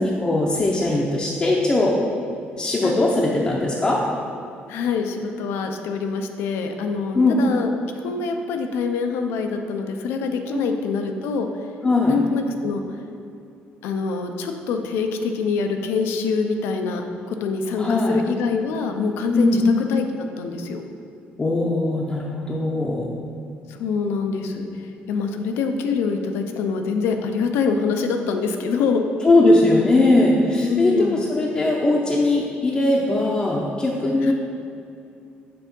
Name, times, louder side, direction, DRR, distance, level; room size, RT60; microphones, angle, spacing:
voice 1, 0.0-1.9 2.6-4.0 7.1-7.4 10.5-10.7 11.8-12.1 17.7-18.2 19.3-19.6 21.4-23.2 29.2-34.3, left 2 dB, 20° left, -4 dB, 0.6 m, -20 dB
voice 2, 4.7-11.5 12.1-12.8 13.8-20.0 20.4-20.8 23.8-29.0 30.6-31.2 34.2-34.3, left 5 dB, 85° left, 5 dB, 0.6 m, -25 dB
6.8 x 3.5 x 5.3 m, 2.6 s
cardioid pair, 135°, 4 cm